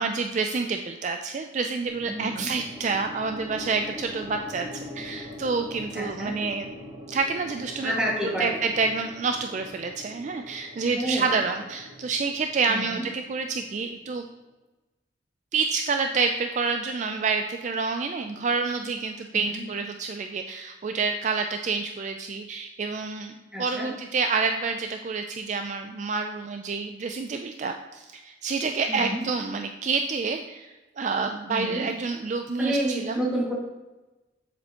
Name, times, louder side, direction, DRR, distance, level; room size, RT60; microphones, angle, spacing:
voice 1, 0.0-4.7 4.9-6.7 7.1-7.9 8.4-14.2 15.5-33.2, right 4 dB, 40° right, 6 dB, 0.3 m, -28 dB
sound 1, 1.9-14.1, left 1 dB, 20° right, 1.3 m, -43 dB
voice 2, 2.1-2.5 5.9-6.3 7.8-8.6 10.9-11.4 12.7-13.0 19.5-19.6 23.5-23.9 28.9-29.2 31.5-31.9 32.6-33.5, right 1 dB, 5° right, -5 dB, 1.9 m, -29 dB
7.5 x 6.9 x 2.9 m, 1.1 s
head